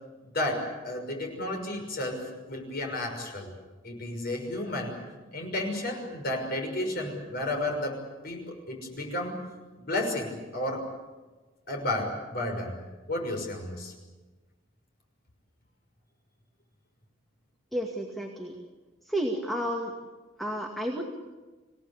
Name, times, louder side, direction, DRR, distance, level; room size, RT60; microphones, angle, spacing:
voice 1, 0.2-2.2 2.5-3.5 3.8-5.0 5.3-8.0 8.2-9.4 9.8-10.9 11.7-12.8 13.1-13.9, left 1 dB, 50° left, 2 dB, 6.1 m, -32 dB
voice 2, 17.7-18.5 19.0-20.0 20.4-21.2, equal, ahead, 1 dB, 2.2 m, -31 dB
27.0 x 17.5 x 8.5 m, 1.2 s
head